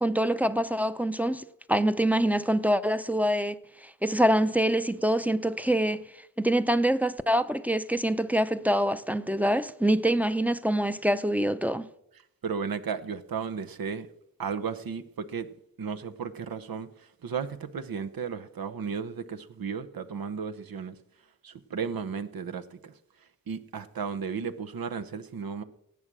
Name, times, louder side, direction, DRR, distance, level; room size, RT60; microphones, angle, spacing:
voice 1, 0.0-3.6 4.0-6.0 6.4-11.9, right 1 dB, 5° right, 0.6 m, -25 dB
voice 2, 12.4-14.1 14.4-15.5 15.8-21.0 21.4-22.9 23.5-25.6, right 6 dB, 80° right, 0.9 m, -34 dB
18.0 x 7.5 x 6.1 m
wide cardioid pair, 70°, 35 cm